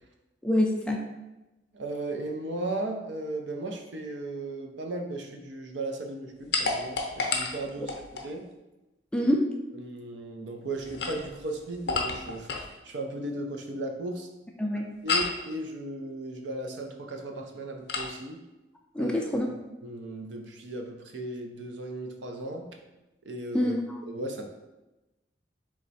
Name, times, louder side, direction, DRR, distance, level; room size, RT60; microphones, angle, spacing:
voice 1, 0.4-1.0 7.8-7.9 9.1-9.4 14.6-14.9 18.9-19.5 23.5-24.0, left 1 dB, 5° left, 0 dB, 0.3 m, -26 dB
voice 2, 1.7-8.5 9.2-9.3 9.7-14.3 15.0-18.4 19.0-19.2 19.8-22.7 23.3-23.8 24.1-24.4, right 2 dB, 75° right, 3 dB, 0.6 m, -36 dB
sound 1, 6.5-8.3 10.8-12.7 15.1-15.4 17.9-18.1, left 4 dB, 65° left, 0.6 m, -30 dB
3.5 x 3.2 x 4.1 m, 1.0 s
head